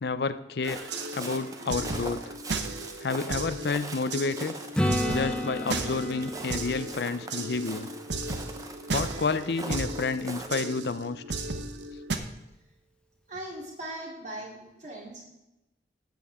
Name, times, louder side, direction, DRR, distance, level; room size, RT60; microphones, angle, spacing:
voice 1, 0.0-0.8 1.1-2.3 3.0-4.5 5.1-7.9 8.9-11.4, left 4 dB, 65° left, 12 dB, 0.5 m, -30 dB
sound 1, 0.6-12.2, right 3 dB, 85° right, 1.0 m, -35 dB
Walk footsteps, 0.7-10.5, right 2 dB, 20° right, 0.9 m, -42 dB
Acoustic guitar / Strum, 4.8-8.5 13.4-13.5, left 1 dB, 5° left, 0.8 m, -32 dB
voice 2, 13.3-15.2, right 1 dB, 40° right, -3 dB, 3.4 m, -39 dB
14.5 x 8.9 x 3.6 m, 0.94 s
head